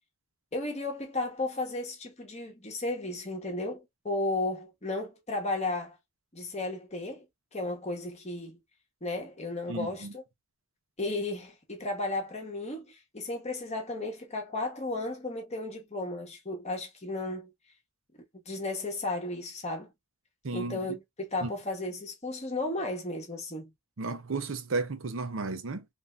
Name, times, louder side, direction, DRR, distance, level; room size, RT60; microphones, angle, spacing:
voice 1, 0.5-6.0 6.3-7.2 7.5-8.6 9.0-10.2 11.0-17.5 18.5-19.9 20.5-23.7, left 2 dB, 30° left, 1.0 m, -34 dB
voice 2, 9.7-10.1 20.4-20.8 21.4-21.5 24.0-25.8, right 3 dB, 65° right, 0.7 m, -33 dB
3.5 x 2.6 x 2.5 m
head